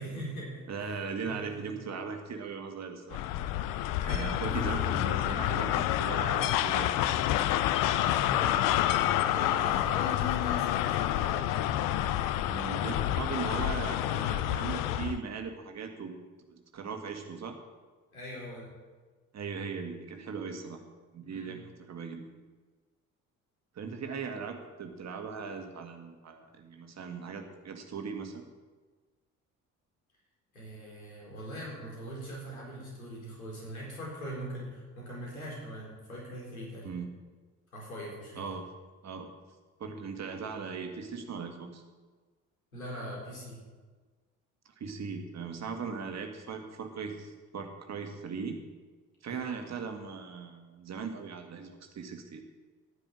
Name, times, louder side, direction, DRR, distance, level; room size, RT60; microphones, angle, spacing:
voice 1, 0.0-1.7 4.0-4.4 4.6-4.9 8.2-8.6 8.9-11.5 18.1-18.7 21.3-21.5 30.5-36.9 37.7-38.4 42.7-43.6, right 1 dB, 80° left, -3 dB, 4.2 m, -42 dB
voice 2, 0.7-3.2 4.1-6.9 12.5-16.1 16.5-17.6 19.3-20.8 21.1-22.4 23.8-28.4 36.8-37.1 38.4-38.7 39.0-39.3 39.8-41.8 44.8-48.6 49.2-52.4, right 5 dB, 40° right, 5 dB, 2.0 m, -39 dB
sound 1, 3.1-15.2, left 12 dB, 55° left, 0.8 m, -28 dB
12.5 x 9.8 x 7.7 m, 1.4 s
figure-of-eight pair, 45°, 41 cm